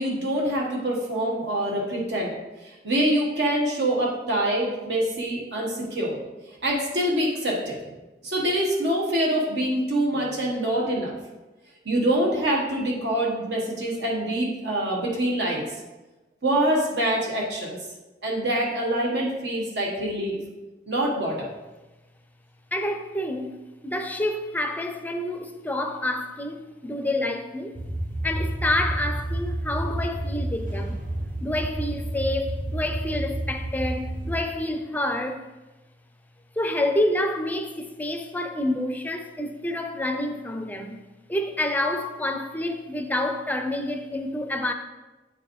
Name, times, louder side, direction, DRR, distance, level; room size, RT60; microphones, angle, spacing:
voice 1, 0.0-2.3 2.6-6.2 6.6-7.8 8.2-11.1 11.8-15.7 16.4-17.8 18.2-20.4 20.9-21.5, right 1 dB, 70° right, 1.2 m, -25 dB
voice 2, 22.7-27.8 28.2-31.0 31.4-35.5 36.6-41.0 41.3-44.7, left 1 dB, 10° left, 0.5 m, -28 dB
sound 1, 27.7-34.4, right 1 dB, 50° right, 0.9 m, -30 dB
8.7 x 4.7 x 3.1 m
head